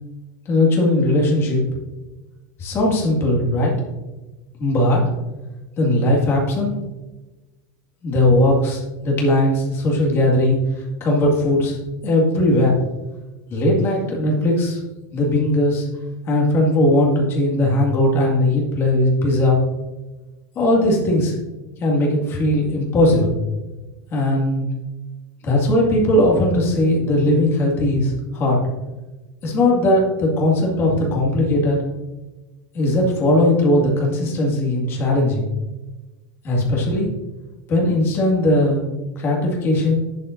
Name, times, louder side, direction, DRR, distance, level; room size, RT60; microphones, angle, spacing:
voice 1, 0.5-1.6 2.6-3.7 4.6-5.0 5.8-6.8 8.0-11.8 12.0-12.7 13.5-14.8 15.1-15.8 16.3-19.6 20.6-21.4 21.8-23.4 24.1-24.7 25.4-28.6 29.4-31.8 32.7-35.4 36.4-37.1 37.7-38.9 39.2-40.0, left 1 dB, 25° left, -2 dB, 2.1 m, -18 dB
11.5 x 7.5 x 2.6 m, 1.1 s
supercardioid pair, 180°, 10 cm